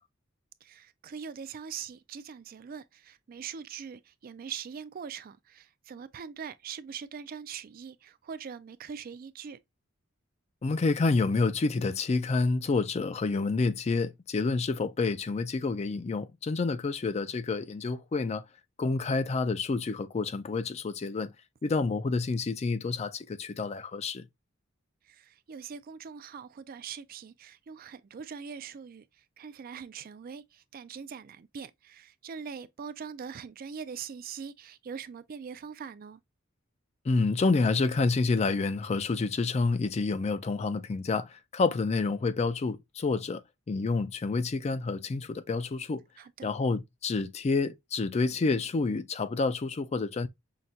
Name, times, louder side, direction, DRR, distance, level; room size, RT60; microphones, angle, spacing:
voice 1, 0.6-9.6 25.0-36.2 46.2-46.5, right 6 dB, 45° right, 0.4 m, -42 dB
voice 2, 10.6-18.4 18.8-21.3 21.6-24.3 37.1-46.0 46.4-50.3, left 3 dB, 35° left, 0.4 m, -28 dB
5.7 x 2.2 x 2.5 m
head